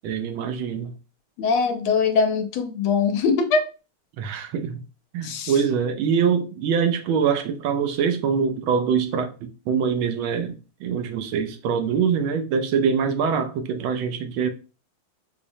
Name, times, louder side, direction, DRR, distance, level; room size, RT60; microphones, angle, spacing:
voice 1, 0.0-0.9 4.2-4.8 5.1-14.5, right 6 dB, 75° right, 1.3 m, -24 dB
voice 2, 1.4-3.6 5.2-5.6, left 5 dB, 75° left, 1.4 m, -22 dB
4.9 x 2.0 x 2.6 m
omnidirectional pair, 2.3 m